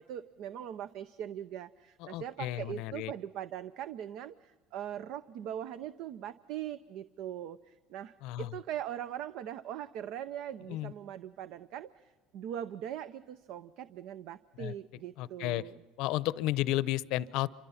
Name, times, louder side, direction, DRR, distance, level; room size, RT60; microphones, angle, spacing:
voice 1, 0.0-15.8, right 10 dB, 65° right, 14 dB, 0.6 m, -41 dB
voice 2, 2.0-3.1 8.2-8.6 10.7-10.9 14.6-14.7 15.2-15.7 16.0-17.5, left 16 dB, 70° left, 18 dB, 0.7 m, -33 dB
28.5 x 25.0 x 5.8 m, 1.3 s
supercardioid pair, 110°, 0 cm